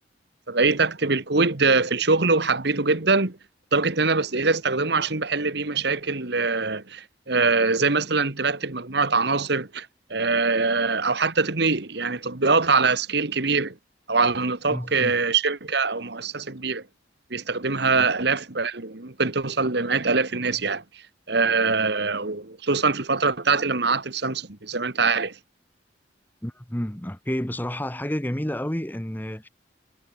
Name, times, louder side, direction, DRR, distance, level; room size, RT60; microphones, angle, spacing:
voice 1, 0.5-3.4 3.7-13.7 14.1-16.8 17.3-20.8 21.3-25.4, right 4 dB, 60° right, 1.6 m, -23 dB
voice 2, 14.7-15.2 18.0-18.1 26.4-29.5, equal, 10° left, 1.1 m, -30 dB
head